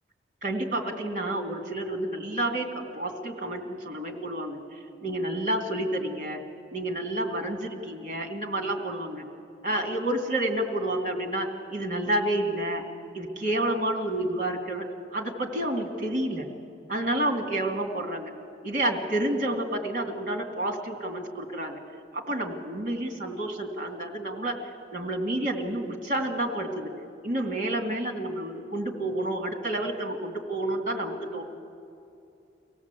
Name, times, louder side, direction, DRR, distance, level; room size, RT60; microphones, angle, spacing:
voice 1, 0.4-6.4 6.7-9.2 9.6-12.8 13.1-16.5 16.9-18.3 18.6-21.8 22.1-24.6 24.9-26.9 27.2-31.4, right 1 dB, 40° right, 3 dB, 2.5 m, -29 dB
24.0 x 17.0 x 8.3 m, 2.6 s
head